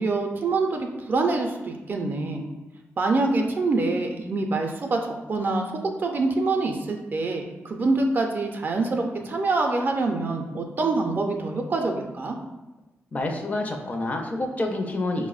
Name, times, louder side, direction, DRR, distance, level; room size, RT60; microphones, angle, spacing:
voice 1, 0.0-2.4 3.0-5.7 6.0-12.4, right 3 dB, 40° right, 3 dB, 0.4 m, -25 dB
voice 2, 13.1-15.3, left 2 dB, 30° left, 2 dB, 0.4 m, -28 dB
4.9 x 2.0 x 2.3 m, 1.1 s
wide cardioid pair, 125°, 5 cm